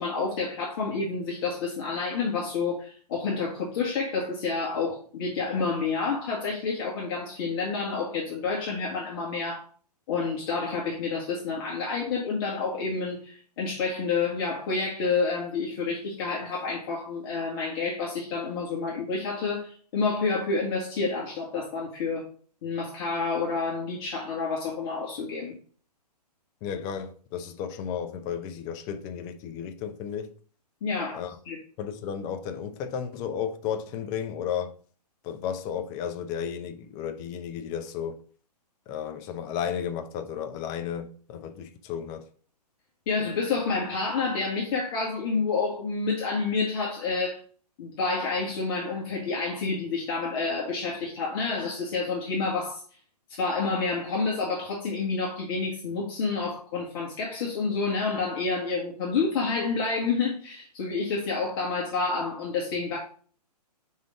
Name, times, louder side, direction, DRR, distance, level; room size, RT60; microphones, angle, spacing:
voice 1, 0.0-9.6 10.1-22.2 22.6-25.5 30.8-31.2 31.5-31.6 43.1-47.4 47.8-52.8 53.4-63.0, left 4 dB, 35° left, 1.7 m, -29 dB
voice 2, 26.6-30.3 31.1-31.4 31.8-34.7 35.2-38.2 38.9-42.3, left 8 dB, 20° left, 0.5 m, -33 dB
5.5 x 3.6 x 4.8 m
figure-of-eight pair, 125°, 21 cm